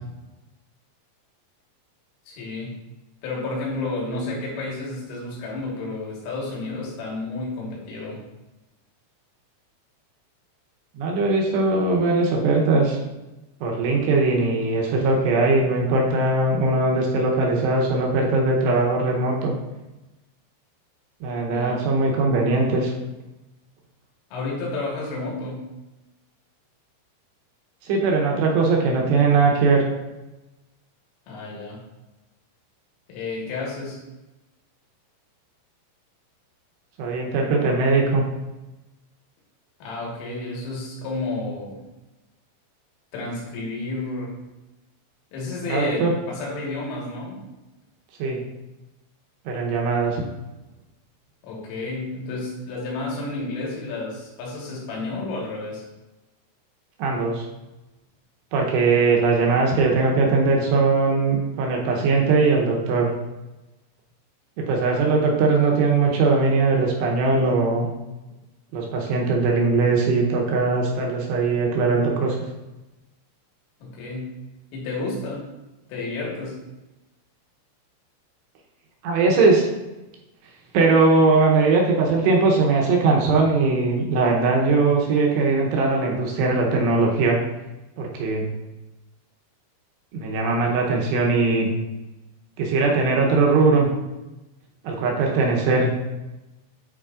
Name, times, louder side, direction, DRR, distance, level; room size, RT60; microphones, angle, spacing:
voice 1, 2.3-2.8 3.2-8.3 21.5-21.8 24.3-25.7 31.3-31.8 33.1-34.0 39.8-41.8 43.1-44.5 45.3-47.4 51.4-55.9 59.0-59.1 73.8-74.4 74.7-75.5 75.9-76.6, left 3 dB, 80° left, -3 dB, 4.2 m, -31 dB
voice 2, 11.0-13.0 13.6-19.5 21.2-22.9 27.8-29.8 37.0-38.2 45.7-46.1 48.2-48.4 49.5-50.2 57.0-57.5 58.5-63.1 64.6-67.9 68.7-72.4 79.0-79.6 80.7-87.4 88.0-88.5 90.1-91.7 92.6-93.9 94.8-95.9, right 3 dB, 75° right, -1 dB, 2.6 m, -20 dB
9.6 x 4.8 x 2.5 m, 1.0 s
omnidirectional pair, 5.8 m